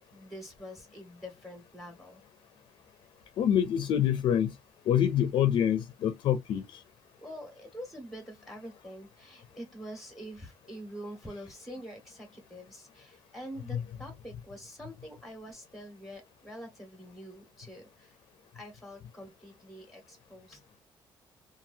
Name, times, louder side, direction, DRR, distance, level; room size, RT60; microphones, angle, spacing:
voice 1, 0.0-2.2 7.2-18.2 18.5-20.6, equal, ahead, 1.3 m, -45 dB
voice 2, 3.4-4.5 4.9-6.6 13.7-13.8, left 9 dB, 75° left, 0.5 m, -26 dB
2.8 x 2.5 x 2.6 m
cardioid pair, 120°, 8 cm